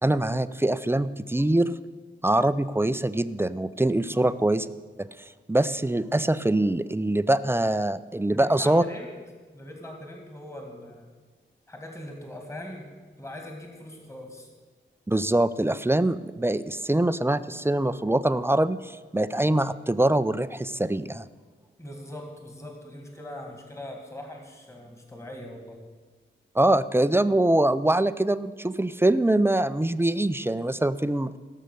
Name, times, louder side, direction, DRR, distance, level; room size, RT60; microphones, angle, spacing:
voice 1, 0.0-1.7 2.2-4.7 5.0-8.8 15.1-21.2 26.5-31.4, right 1 dB, 10° right, 14 dB, 0.4 m, -24 dB
voice 2, 8.3-9.1 9.5-11.1 11.7-12.9 13.2-14.5 21.8-25.8, left 1 dB, 15° left, 2 dB, 1.9 m, -41 dB
16.5 x 6.6 x 6.7 m, 1.4 s
wide cardioid pair, 70°, 20 cm